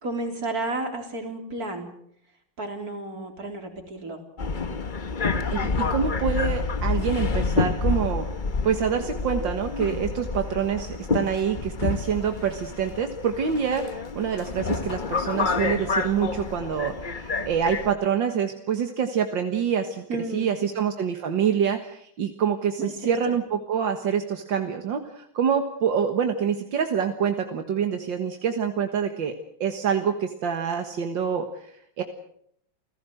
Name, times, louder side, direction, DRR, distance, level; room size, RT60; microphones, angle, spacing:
voice 1, 0.0-1.9 2.6-4.2 20.1-20.7 22.8-23.3, right 2 dB, 50° right, 4 dB, 4.3 m, -32 dB
Subway metro underground, 4.4-17.9, left 4 dB, 30° left, 1.0 m, -28 dB
voice 2, 5.5-8.3 8.6-29.3 29.6-32.0, right 7 dB, 80° right, 6 dB, 2.2 m, -26 dB
29.0 x 16.5 x 7.9 m, 0.70 s
omnidirectional pair, 2.0 m